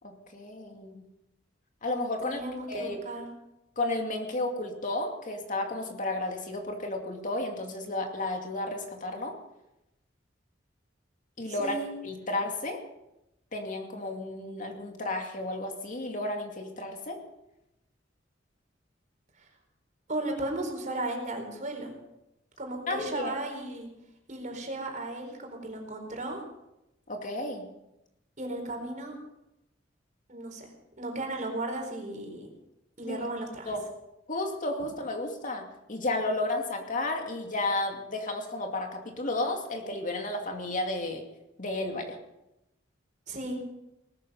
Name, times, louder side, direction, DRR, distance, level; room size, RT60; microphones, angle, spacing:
voice 1, 0.0-1.0 1.8-2.4 2.7-3.0 3.8-9.3 11.4-11.8 12.0-12.8 13.5-17.2 22.9-23.3 27.1-27.7 33.1-33.3 33.7-33.8 34.3-41.2 41.6-42.2, left 2 dB, 45° left, 3 dB, 2.4 m, -32 dB
voice 2, 2.2-3.3 11.5-11.9 19.4-19.5 20.1-22.0 22.6-23.9 24.3-26.4 28.4-29.2 30.3-30.7 31.0-32.5 33.0-33.7 43.3-43.6, right 2 dB, 45° right, 2 dB, 4.4 m, -35 dB
19.0 x 13.0 x 5.6 m, 0.89 s
head